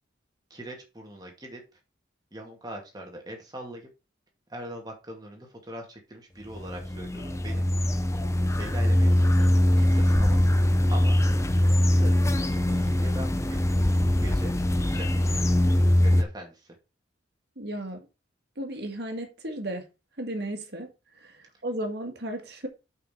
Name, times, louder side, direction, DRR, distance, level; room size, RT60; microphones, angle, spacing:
voice 1, 0.5-1.8 2.3-3.9 4.5-7.6 8.1-8.2 8.6-10.6 10.9-11.2 11.8-13.6 14.1-14.5 14.8-15.4 15.8-16.7, equal, 20° right, 2.3 m, -42 dB
sound 1, 6.5-16.2, left 1 dB, 15° left, 0.5 m, -22 dB
voice 2, 17.6-18.1 18.6-19.9 20.2-20.9 21.2-22.7, right 1 dB, 60° right, 1.9 m, -34 dB
5.8 x 5.6 x 5.7 m
head